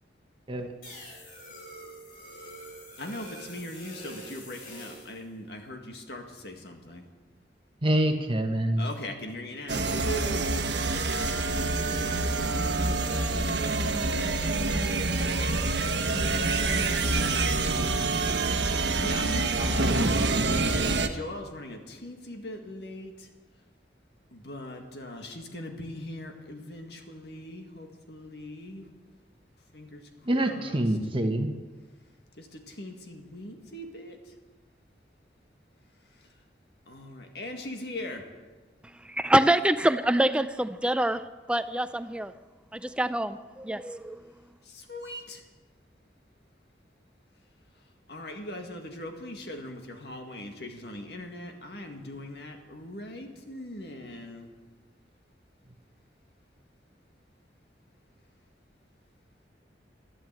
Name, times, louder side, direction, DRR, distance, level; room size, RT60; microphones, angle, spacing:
sound 1, 0.8-5.2, equal, 50° left, 4.5 m, -45 dB
voice 1, 3.0-7.0 8.8-10.5 12.4-16.9 17.7-18.1 18.9-23.3 24.3-28.9 29.7-30.0 30.3-30.5 32.4-34.2 36.9-38.2 44.7-45.4 48.1-54.5, left 1 dB, 65° left, 4 dB, 2.0 m, -40 dB
voice 2, 7.8-8.9 30.2-31.5, right 1 dB, 30° right, 5 dB, 1.3 m, -26 dB
sound 2, 9.7-21.1, right 3 dB, 85° right, 1.0 m, -26 dB
voice 3, 38.8-41.2 41.5-42.3 42.7-44.2, right 1 dB, 5° right, 12 dB, 0.4 m, -26 dB
12.5 x 12.0 x 7.6 m, 1.3 s
head